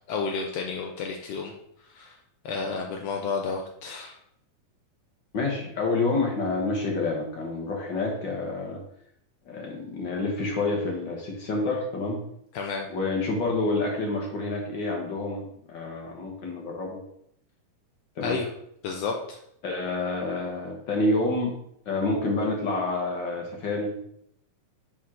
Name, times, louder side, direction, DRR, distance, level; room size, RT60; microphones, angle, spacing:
voice 1, 0.1-1.5 1.9-2.2 2.4-4.1 12.5-12.9 18.2-18.5 18.8-19.4, left 4 dB, 85° left, 1 dB, 1.4 m, -31 dB
voice 2, 5.3-8.8 9.5-12.2 12.9-17.0 18.2-18.4 19.6-21.5 21.9-23.9, left 2 dB, 65° left, 0 dB, 1.1 m, -28 dB
7.1 x 3.8 x 6.2 m, 0.74 s
omnidirectional pair, 3.7 m